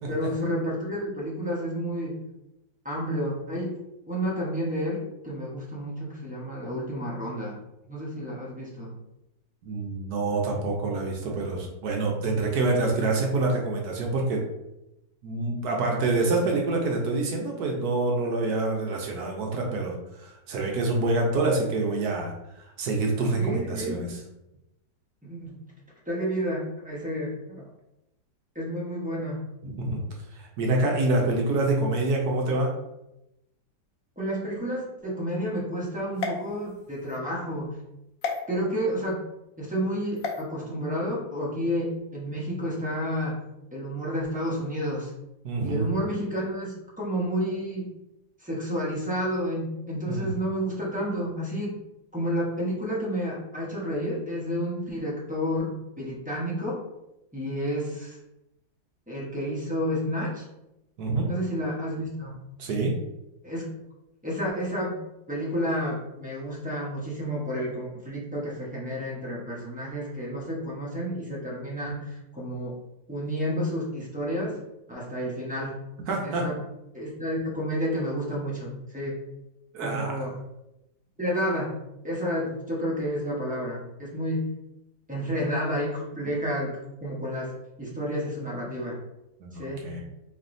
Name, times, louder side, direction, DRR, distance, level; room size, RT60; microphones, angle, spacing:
voice 1, 0.1-2.2 2.8-3.7 4.1-7.5 7.9-8.9 23.4-24.0 25.2-25.5 26.1-27.6 28.5-29.5 34.2-37.8 38.5-39.2 39.6-43.4 43.7-45.1 45.6-47.9 48.4-51.7 52.1-56.8 57.3-58.2 59.1-60.4 61.2-62.4 63.4-63.7 64.2-65.0 65.3-72.8 73.1-74.6 74.9-75.8 76.2-76.6 76.9-79.2 79.8-80.3 81.2-81.7 82.0-84.5 85.1-87.5 87.8-89.0 89.5-89.9, equal, 10° right, -5 dB, 0.6 m, -30 dB
voice 2, 9.6-14.4 15.2-22.3 22.8-24.2 29.6-30.0 30.3-32.7 45.4-45.8 50.1-50.3 61.0-61.3 62.6-62.9 76.1-76.5 79.7-80.2 89.4-90.0, right 2 dB, 65° right, 0 dB, 1.2 m, -26 dB
sound 1, 36.1-37.2 38.2-38.4 40.2-40.4, left 5 dB, 65° left, 0.9 m, -33 dB
4.3 x 3.2 x 2.6 m, 0.90 s
omnidirectional pair, 1.9 m